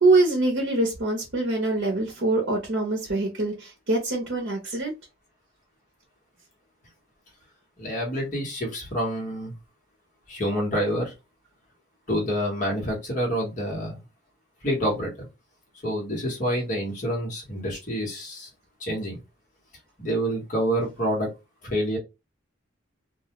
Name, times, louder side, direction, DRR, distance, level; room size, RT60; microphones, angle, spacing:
voice 1, 0.0-4.9, right 2 dB, 65° right, 0.7 m, -24 dB
voice 2, 7.8-9.5 10.3-11.1 12.1-14.0 14.6-15.3 15.8-18.5 18.8-19.2 20.0-21.3 21.6-22.0, equal, 40° left, 1.1 m, -27 dB
2.3 x 2.2 x 2.9 m
head